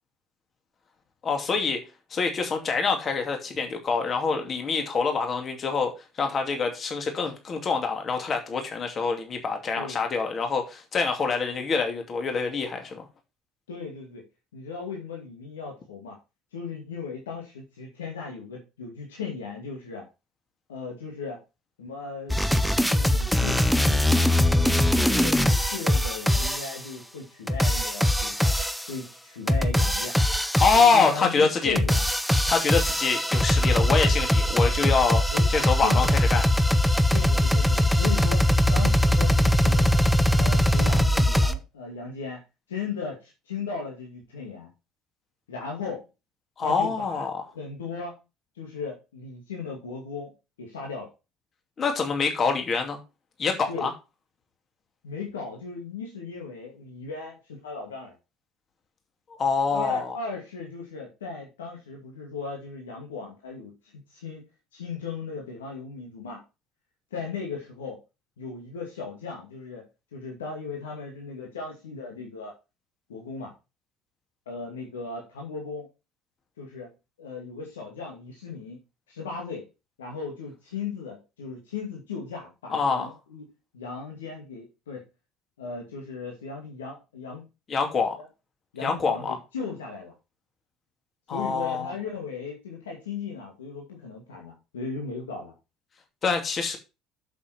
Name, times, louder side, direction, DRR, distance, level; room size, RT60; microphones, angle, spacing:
voice 1, 1.2-1.8 2.1-13.1 30.6-31.8 32.5-35.2 35.5-36.4 46.6-47.3 51.8-53.0 53.4-53.9 59.4-60.2 82.7-83.1 87.7-88.2 88.8-89.4 91.3-91.9 96.2-96.8, left 5 dB, 35° left, 2.6 m, -25 dB
voice 2, 13.7-14.2 14.5-16.2 16.5-20.1 20.7-21.4 21.8-22.4 22.9-24.0 24.4-28.5 28.9-30.1 30.7-32.0 35.3-35.5 35.8-36.1 37.1-40.0 40.3-42.4 42.7-44.7 45.5-46.1 46.6-47.2 47.5-48.2 48.5-50.3 50.6-51.1 53.7-53.9 55.0-58.2 59.7-64.4 64.7-66.4 67.1-68.0 68.4-69.9 70.1-72.5 73.1-73.5 74.5-75.9 76.6-76.9 77.2-79.7 80.0-83.4 83.7-85.1 85.6-87.5 88.2-88.3 88.7-90.1 91.3-95.5, left 5 dB, 75° left, 2.5 m, -37 dB
sound 1, 22.3-26.8 27.5-28.9 29.5-31.1 31.6-41.5, left 1 dB, ahead, 1.0 m, -22 dB
8.4 x 7.4 x 4.5 m
figure-of-eight pair, 60°, 0 cm